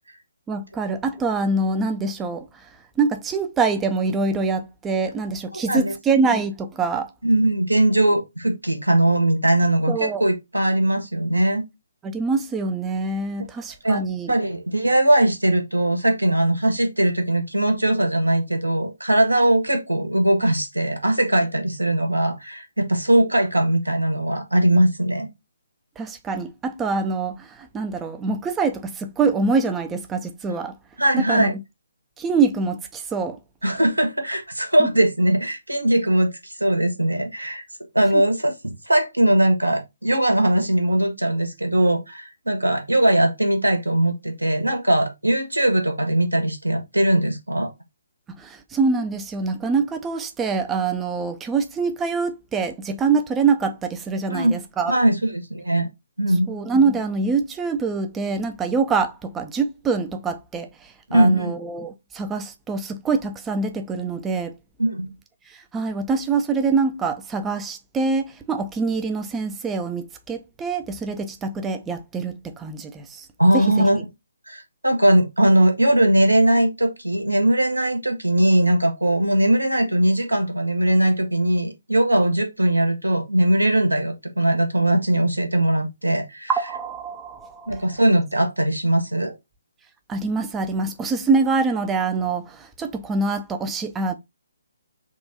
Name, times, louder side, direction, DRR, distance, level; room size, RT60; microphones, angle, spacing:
voice 1, 0.5-2.6 3.0-7.1 9.9-10.2 12.0-14.3 26.0-30.7 31.1-31.5 32.2-33.4 34.8-34.9 38.1-38.2 48.3-54.9 56.5-64.5 65.5-73.3 73.5-73.8 86.5-87.8 90.1-94.1, right 4 dB, 10° right, 0.5 m, -25 dB
voice 2, 5.5-5.9 7.2-11.6 13.8-14.0 14.3-25.3 31.0-31.5 33.6-37.6 37.9-47.7 54.3-54.6 54.9-55.9 56.2-56.5 61.1-61.5 64.8-65.2 73.4-74.0 74.5-86.5 87.7-89.3, right 1 dB, 85° right, 1.2 m, -20 dB
3.6 x 2.5 x 4.2 m
figure-of-eight pair, 135°, 0 cm